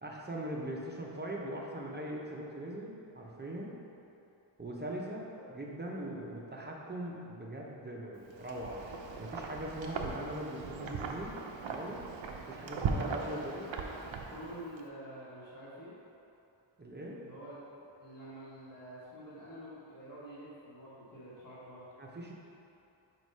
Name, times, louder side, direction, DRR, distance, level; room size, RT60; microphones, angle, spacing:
voice 1, 0.0-3.7 4.6-8.8 9.2-11.4 11.7-12.0 12.5-13.6 16.8-17.2 22.0-22.3, right 1 dB, 25° right, -3 dB, 0.6 m, -41 dB
Wind, 8.3-14.8, right 5 dB, 80° right, 0.6 m, -39 dB
voice 2, 12.9-13.9 14.3-15.9 17.2-17.6 18.0-21.9, equal, 45° left, -9 dB, 1.3 m, -48 dB
4.7 x 4.5 x 5.4 m, 2.8 s
wide cardioid pair, 165°, 45 cm